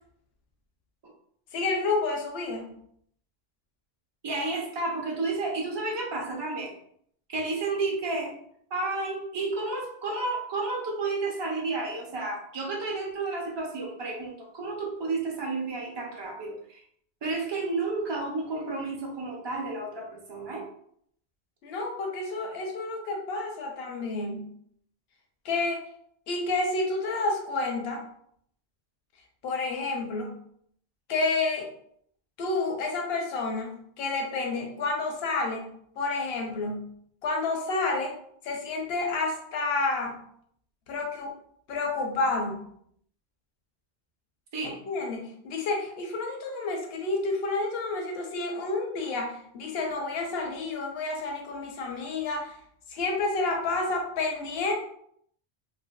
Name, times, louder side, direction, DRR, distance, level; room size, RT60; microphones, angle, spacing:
voice 1, 1.5-2.7 21.6-24.5 25.4-25.8 26.3-28.0 29.4-30.3 31.1-31.7 32.4-35.6 36.0-36.9 37.2-38.2 38.4-40.2 40.9-41.3 41.7-42.6 44.9-52.5 52.9-54.7, left 3 dB, 70° left, 2 dB, 0.8 m, -29 dB
voice 2, 4.2-6.7 7.3-8.3 8.7-16.8 17.2-20.7 44.5-44.8, right 3 dB, 35° right, 0 dB, 0.4 m, -31 dB
2.6 x 2.5 x 2.2 m, 0.68 s
omnidirectional pair, 1.1 m